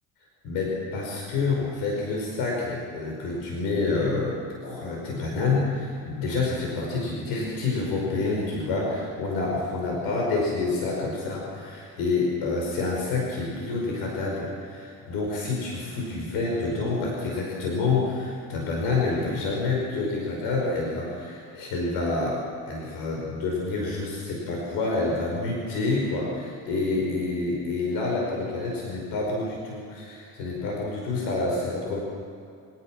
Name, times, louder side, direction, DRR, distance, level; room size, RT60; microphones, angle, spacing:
voice 1, 0.4-22.4 22.7-32.0, left 3 dB, 85° left, -2 dB, 5.6 m, -28 dB
25.0 x 18.0 x 6.2 m, 2.4 s
cardioid pair, 140°, 34 cm